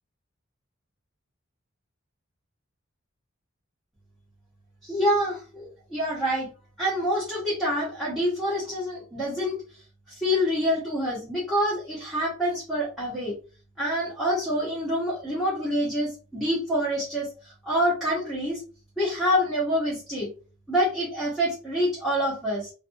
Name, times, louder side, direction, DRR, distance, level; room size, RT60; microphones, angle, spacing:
voice 1, 4.8-6.5 6.8-9.6 10.1-13.3 13.8-18.6 19.0-20.3 20.7-22.7, equal, ahead, -7 dB, 0.9 m, -26 dB
2.5 x 2.3 x 2.6 m, 0.35 s
head